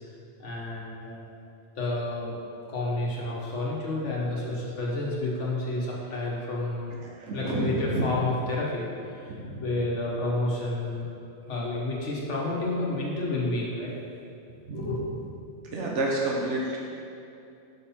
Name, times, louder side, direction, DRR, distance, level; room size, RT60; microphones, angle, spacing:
voice 1, 0.4-1.3 1.8-2.3 2.7-6.9 7.3-8.8 9.1-11.1 11.5-13.9 14.7-15.1, left 2 dB, 80° left, -4 dB, 1.6 m, -30 dB
voice 2, 7.0-8.1 9.3-9.7 14.7-14.9 15.7-16.8, right 2 dB, 75° right, -3 dB, 1.2 m, -29 dB
6.6 x 5.5 x 4.3 m, 2.6 s
omnidirectional pair, 1.2 m